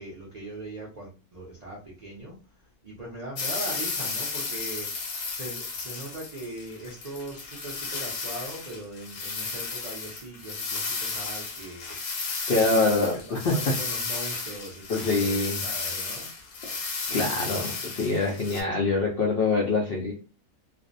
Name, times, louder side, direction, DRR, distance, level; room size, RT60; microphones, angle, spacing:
voice 1, 0.0-11.9 12.5-17.8 18.2-19.1, right 1 dB, 50° right, -5 dB, 0.5 m, -41 dB
sound 1, 3.4-18.6, left 4 dB, 85° left, 1.1 m, -33 dB
voice 2, 12.5-13.5 14.9-15.6 16.6-16.8 17.1-20.1, left 3 dB, 70° left, -1 dB, 0.5 m, -25 dB
2.5 x 2.0 x 2.5 m, 0.34 s
omnidirectional pair, 1.5 m